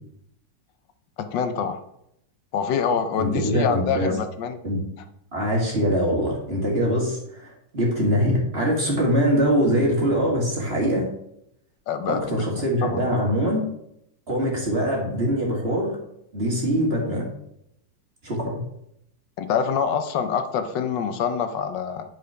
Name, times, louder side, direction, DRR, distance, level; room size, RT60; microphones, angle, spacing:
voice 1, 1.2-1.8 2.5-4.6 11.9-12.2 12.8-13.0 19.4-22.0, left 7 dB, 85° left, 9 dB, 1.5 m, -25 dB
voice 2, 3.2-4.1 4.6-4.8 5.3-11.1 12.1-13.6 14.3-16.0 16.3-17.3 18.2-18.6, equal, 35° right, -2 dB, 2.6 m, -23 dB
9.5 x 5.1 x 5.7 m, 0.77 s
omnidirectional pair, 1.9 m